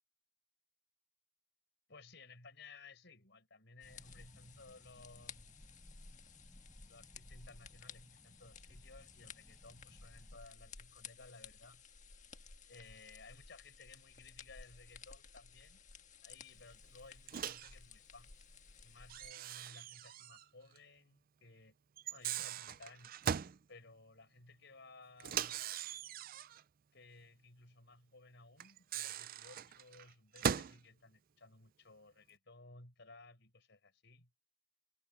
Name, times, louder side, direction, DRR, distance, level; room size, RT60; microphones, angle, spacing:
voice 1, 1.9-5.6 6.6-11.8 12.7-15.8 16.2-18.3 18.8-21.8 22.1-23.2 23.7-25.7 26.9-34.3, left 3 dB, 60° left, 5.8 m, -58 dB
sound 1, 3.8-19.3, left 5 dB, 40° left, 1.6 m, -56 dB
sound 2, 3.8-10.4, equal, ahead, 5.9 m, -65 dB
Microwave oven, 17.3-17.7 19.1-20.5 20.8-20.9 22.0-23.6 25.2-26.6 28.6-30.8, right 8 dB, 45° right, 0.4 m, -40 dB
head